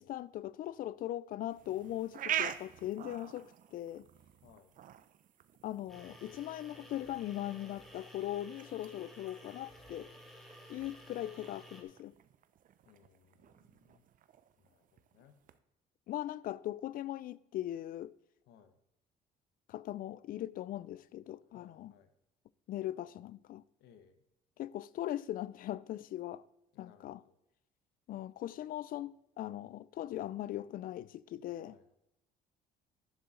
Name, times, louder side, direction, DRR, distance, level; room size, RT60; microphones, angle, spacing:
voice 1, 0.0-4.1 5.6-10.2 10.7-12.1 16.1-18.2 19.7-21.9 22.7-23.6 24.6-26.4 26.8-27.2 28.1-31.7, left 13 dB, 55° left, 0.4 m, -40 dB
sound 1, 1.5-15.6, right 11 dB, 50° right, 0.6 m, -45 dB
voice 2, 4.4-4.8 12.8-14.0 14.6-15.4 18.5-18.7 21.5-22.1 23.8-24.2 26.7-27.4 31.5-32.0, left 8 dB, 75° left, 1.1 m, -63 dB
sound 2, 5.9-11.8, equal, ahead, 1.7 m, -54 dB
10.5 x 7.0 x 3.8 m
cardioid pair, 110°, 17 cm